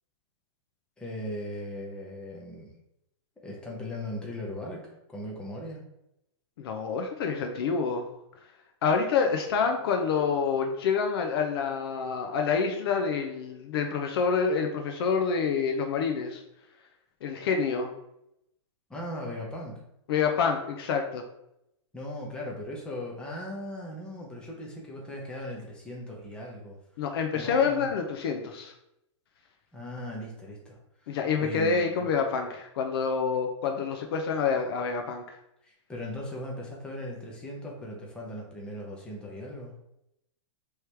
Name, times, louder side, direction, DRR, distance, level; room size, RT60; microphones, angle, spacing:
voice 1, 1.0-2.7 3.4-5.8 18.9-19.8 21.9-26.8 27.3-27.9 29.7-32.1 35.6-39.7, left 1 dB, 5° left, -2 dB, 0.8 m, -38 dB
voice 2, 6.6-8.1 8.8-16.4 17.2-17.9 20.1-21.2 27.0-28.7 31.1-35.2, left 5 dB, 50° left, 4 dB, 0.6 m, -27 dB
4.6 x 3.2 x 3.3 m, 0.82 s
hypercardioid pair, 155°, 16 cm